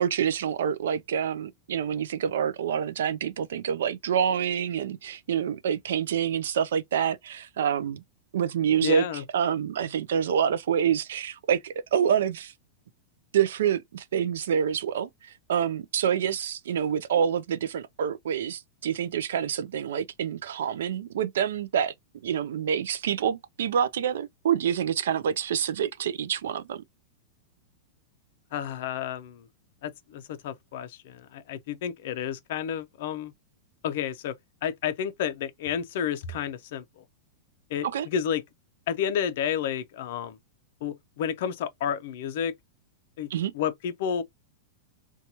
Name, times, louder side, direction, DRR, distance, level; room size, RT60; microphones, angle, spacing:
voice 1, 0.0-8.0 8.3-9.1 9.3-12.5 13.3-21.9 22.2-26.8 37.8-38.1 43.3-43.5, right 8 dB, 75° right, 0.3 m, -27 dB
voice 2, 8.8-9.2 28.5-29.5 29.8-33.3 33.8-34.3 34.6-37.0 37.7-38.4 38.9-40.4 40.8-42.5 43.2-43.3 43.5-44.2, left 8 dB, 50° left, 0.4 m, -31 dB
2.8 x 2.2 x 2.6 m
supercardioid pair, 175°, 0 cm